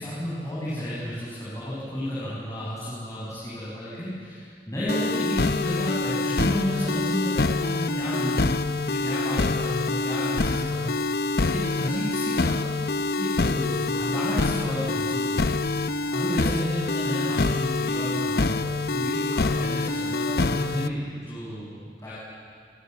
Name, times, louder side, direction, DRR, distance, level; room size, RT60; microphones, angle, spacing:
voice 1, 0.0-8.6 8.9-12.6 13.2-22.1, equal, 20° left, -8 dB, 7.2 m, -32 dB
sound 1, 4.9-20.9, left 3 dB, 60° left, 0.8 m, -26 dB
27.5 x 25.5 x 8.2 m, 2.2 s
head